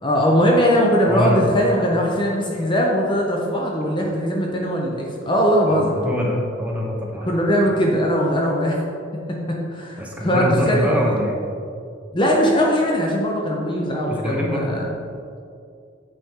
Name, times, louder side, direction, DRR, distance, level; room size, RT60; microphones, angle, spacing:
voice 1, 0.0-6.0 7.2-8.8 9.3-11.2 12.1-14.8, equal, 25° left, -1 dB, 0.7 m, -20 dB
voice 2, 1.1-1.4 5.7-7.3 10.0-11.4 14.1-14.7, equal, 5° right, -2 dB, 0.9 m, -24 dB
8.4 x 4.3 x 3.7 m, 2.4 s
head